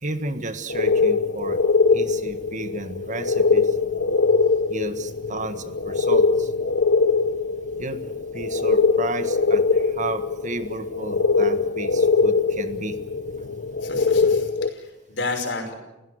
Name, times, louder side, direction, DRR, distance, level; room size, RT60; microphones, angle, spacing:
voice 1, 0.0-1.6 1.9-4.0 4.7-6.5 7.8-13.0, right 3 dB, 40° right, 10 dB, 1.6 m, -33 dB
sound 1, 0.7-14.7, left 4 dB, 90° left, 1.0 m, -22 dB
voice 2, 13.8-15.7, left 3 dB, 70° left, 4 dB, 5.6 m, -31 dB
29.0 x 16.5 x 8.1 m, 1.0 s
head